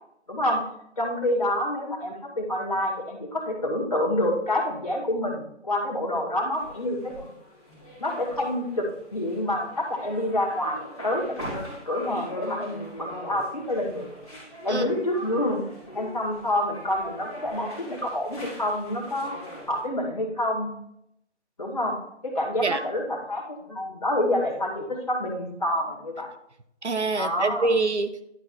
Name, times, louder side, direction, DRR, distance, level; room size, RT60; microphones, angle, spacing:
voice 1, 0.3-0.6 1.0-7.3 8.0-14.2 14.6-15.6 15.9-19.3 19.7-20.7 21.6-26.3 27.1-27.7, left 1 dB, 30° left, -2 dB, 2.2 m, -28 dB
sound 1, 6.6-19.8, equal, ahead, 2.8 m, -41 dB
voice 2, 26.8-28.3, right 3 dB, 75° right, 9 dB, 1.0 m, -25 dB
11.0 x 4.8 x 4.3 m, 0.75 s
figure-of-eight pair, 175°, 35 cm